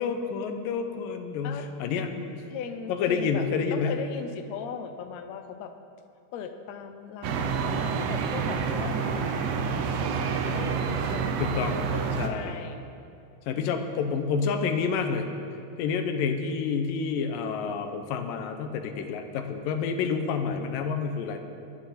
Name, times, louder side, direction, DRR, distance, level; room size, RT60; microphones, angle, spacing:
voice 1, 0.0-2.4 2.9-3.9 11.4-11.8 12.2-12.5 13.5-15.3 15.8-21.4, left 5 dB, 85° left, 6 dB, 2.6 m, -29 dB
voice 2, 2.5-5.7 6.3-12.8 13.6-14.1, left 7 dB, 70° left, 6 dB, 1.8 m, -39 dB
sound 1, 7.2-12.3, right 6 dB, 80° right, 2.5 m, -28 dB
22.5 x 9.1 x 4.3 m, 2.4 s
omnidirectional pair, 3.8 m